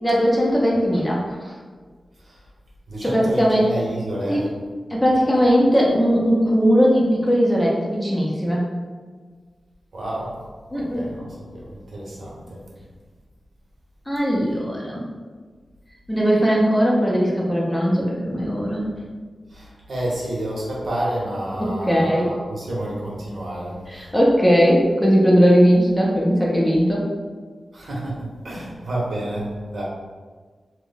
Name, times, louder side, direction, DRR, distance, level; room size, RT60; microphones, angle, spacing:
voice 1, 0.0-1.3 3.0-3.7 4.3-4.5 4.9-8.7 10.7-11.2 14.1-15.0 16.1-18.8 21.6-22.3 23.9-27.1, equal, 10° left, -4 dB, 0.6 m, -19 dB
voice 2, 2.9-4.5 9.9-10.4 10.7-12.6 19.5-24.1 27.7-29.8, right 1 dB, 60° right, -5 dB, 0.9 m, -30 dB
3.0 x 2.1 x 3.9 m, 1.5 s
wide cardioid pair, 140°, 0 cm